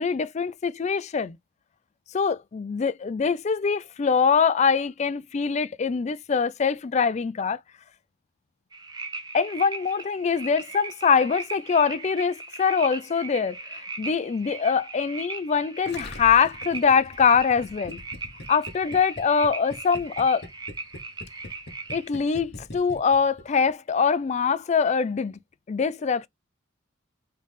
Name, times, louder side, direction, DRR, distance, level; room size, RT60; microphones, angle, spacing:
voice 1, 0.0-1.4 2.1-7.6 9.3-18.0 18.5-20.5 21.9-25.4 25.7-26.3, left 6 dB, 35° left, 0.3 m, -23 dB
sound 1, 8.7-22.1, right 3 dB, 20° right, 0.8 m, -39 dB
Gurgling, 15.9-23.4 23.7-23.8, left 1 dB, 50° left, 1.1 m, -41 dB
3.9 x 3.2 x 3.3 m
head